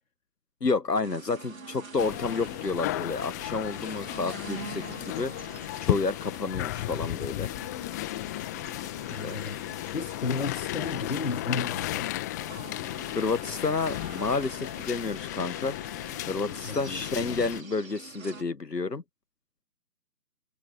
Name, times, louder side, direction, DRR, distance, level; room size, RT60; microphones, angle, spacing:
voice 1, 0.6-5.3 5.8-7.5 9.2-9.4 13.1-15.7 16.3-19.0, left 3 dB, 80° left, 1.4 m, -30 dB
sound 1, 1.0-18.4, right 4 dB, 55° right, 5.7 m, -46 dB
sound 2, 2.0-17.6, left 17 dB, 10° left, 1.6 m, -34 dB
voice 2, 9.1-9.6 9.9-12.1 16.3-17.5, left 4 dB, 55° left, 4.0 m, -34 dB
figure-of-eight pair, 150°, 48 cm